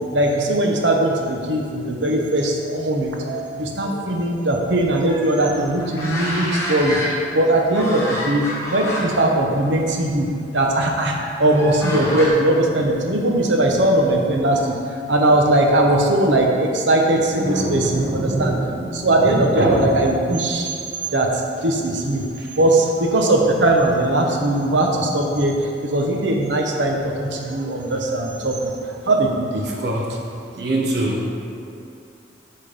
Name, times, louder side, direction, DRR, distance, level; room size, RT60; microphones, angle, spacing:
voice 1, 0.1-7.0 7.3-10.3 10.5-18.6 18.9-20.7 21.1-28.6 29.1-29.6, right 1 dB, 80° right, 1 dB, 0.9 m, -19 dB
sound 1, 5.1-7.4 7.7-9.3 9.7-9.8 11.1-12.3, equal, 15° left, 0.9 m, -28 dB
voice 2, 17.3-19.9 22.4-22.5 27.5-27.6 29.8-30.2 30.6-31.3, right 1 dB, 65° right, -2 dB, 1.2 m, -24 dB
8.4 x 3.8 x 5.1 m, 2.5 s
head